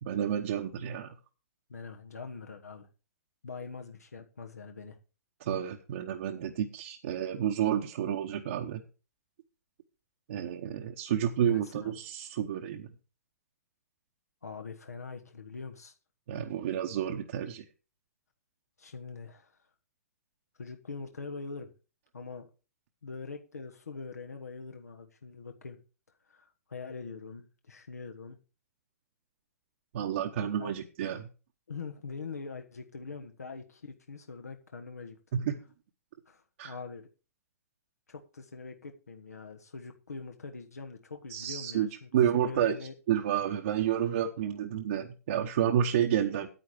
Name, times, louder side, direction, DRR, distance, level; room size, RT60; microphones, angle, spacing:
voice 1, 0.0-1.1 5.4-8.8 10.3-12.9 16.3-17.6 29.9-31.3 35.3-35.5 36.6-36.7 41.3-42.8 43.1-46.5, right 9 dB, 50° right, 1.0 m, -30 dB
voice 2, 1.7-2.9 3.4-5.0 11.5-12.0 14.4-15.9 18.8-19.6 20.6-21.7 22.1-22.5 23.0-25.8 26.3-28.4 30.6-30.7 31.7-35.2 36.3-37.1 38.1-42.9, left 4 dB, 80° left, 1.3 m, -43 dB
9.5 x 8.6 x 4.8 m
figure-of-eight pair, 120°, 8 cm